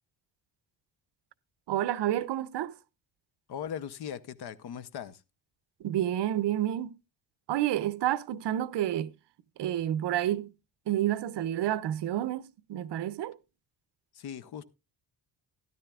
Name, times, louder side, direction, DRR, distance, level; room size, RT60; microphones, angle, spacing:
voice 1, 1.7-2.8 5.8-7.0 7.5-9.1 9.6-10.5 10.9-13.4, right 12 dB, 70° right, 0.6 m, -29 dB
voice 2, 3.5-5.2 14.1-14.6, left 9 dB, 60° left, 0.8 m, -39 dB
13.5 x 12.5 x 2.3 m
wide cardioid pair, 160°, 43 cm